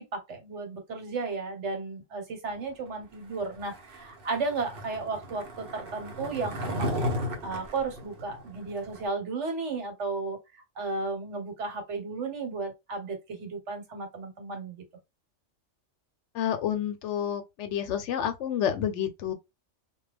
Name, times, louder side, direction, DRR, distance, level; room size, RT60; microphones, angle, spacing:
voice 1, 0.0-7.0 7.4-10.4 10.8-14.8, right 3 dB, 75° right, 1.2 m, -34 dB
Skateboard, 3.6-9.0, equal, 55° right, 0.9 m, -35 dB
voice 2, 16.3-19.3, left 9 dB, 75° left, 0.9 m, -29 dB
2.2 x 2.2 x 3.3 m
omnidirectional pair, 1.2 m